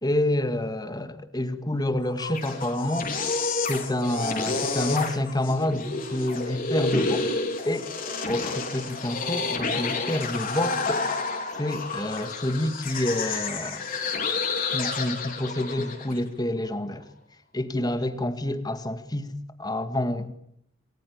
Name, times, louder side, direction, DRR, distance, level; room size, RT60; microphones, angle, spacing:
voice 1, 0.0-3.1 3.7-7.3 7.7-7.9 8.3-11.1 11.6-13.9 14.7-17.1 17.5-19.3 19.6-20.3, left 1 dB, 20° left, 9 dB, 2.1 m, -28 dB
sound 1, 2.0-16.2, left 3 dB, 45° left, 4.8 m, -30 dB
28.0 x 21.0 x 8.7 m, 0.73 s
head